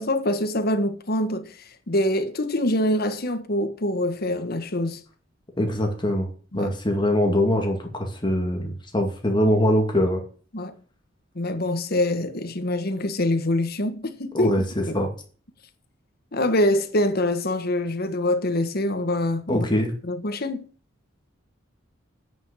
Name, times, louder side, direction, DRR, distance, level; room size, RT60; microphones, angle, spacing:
voice 1, 0.0-5.0 6.5-6.7 10.5-10.7 11.3-14.7 16.3-19.7 20.0-20.6, left 1 dB, 50° left, 1.4 m, -25 dB
voice 2, 5.6-6.3 6.5-10.2 14.3-14.6 14.9-15.1 19.5-19.9, left 1 dB, 25° left, 2.2 m, -22 dB
9.2 x 6.2 x 7.9 m
head